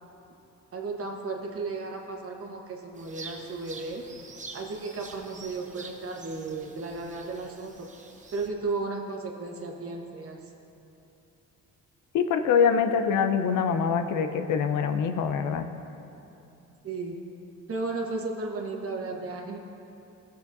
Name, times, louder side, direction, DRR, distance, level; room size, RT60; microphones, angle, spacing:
voice 1, 0.7-4.0 4.5-7.9 8.3-10.4 16.8-17.2 17.7-19.6, right 3 dB, 50° right, 1 dB, 1.3 m, -34 dB
sound 1, 2.9-8.5, right 3 dB, 25° right, 0.8 m, -46 dB
voice 2, 12.1-15.6, left 6 dB, 80° left, 8 dB, 0.6 m, -24 dB
15.0 x 6.8 x 2.7 m, 2.9 s
cardioid pair, 90°, 30 cm